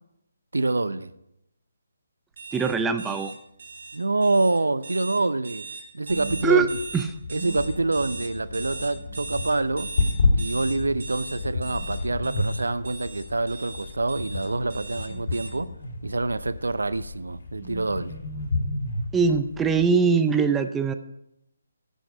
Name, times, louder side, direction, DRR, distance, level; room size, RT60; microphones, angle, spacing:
voice 1, 0.5-1.1 3.9-5.6 5.9-6.7 7.3-9.9 10.3-15.7 16.0-18.1, right 2 dB, 80° right, 0.6 m, -26 dB
sound 1, 2.4-15.5, right 4 dB, 55° right, 2.6 m, -39 dB
voice 2, 2.5-3.3 6.4-6.7 6.9-7.1 19.1-20.9, right 5 dB, 10° right, 0.5 m, -22 dB
sound 2, 6.1-19.8, left 3 dB, 60° left, 2.8 m, -31 dB
15.0 x 6.5 x 5.0 m
figure-of-eight pair, 150°, 0 cm